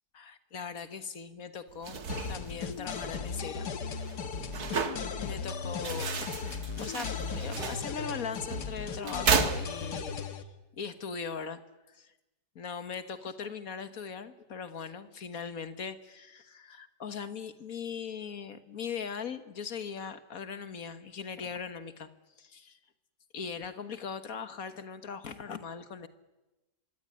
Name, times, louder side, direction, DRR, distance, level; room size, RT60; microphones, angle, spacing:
voice 1, 0.1-2.0 2.3-3.7 5.2-10.5 10.7-11.6 11.9-12.1 12.6-22.1 22.4-22.8 23.3-26.1, left 6 dB, 60° left, 11 dB, 1.9 m, -40 dB
sound 1, 1.7-10.3, right 5 dB, 70° right, 2.2 m, -35 dB
sound 2, 2.1-10.4, left 5 dB, 90° left, 2.0 m, -37 dB
25.0 x 20.5 x 9.9 m, 1.1 s
omnidirectional pair, 1.7 m